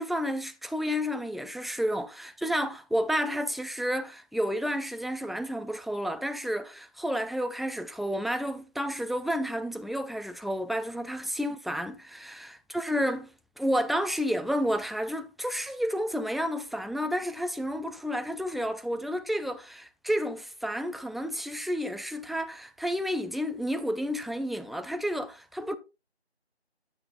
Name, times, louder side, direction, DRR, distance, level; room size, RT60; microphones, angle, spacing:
voice 1, 0.0-13.3 13.6-25.8, equal, ahead, 0.4 m, -31 dB
12.5 x 7.9 x 2.4 m
figure-of-eight pair, 175°, 34 cm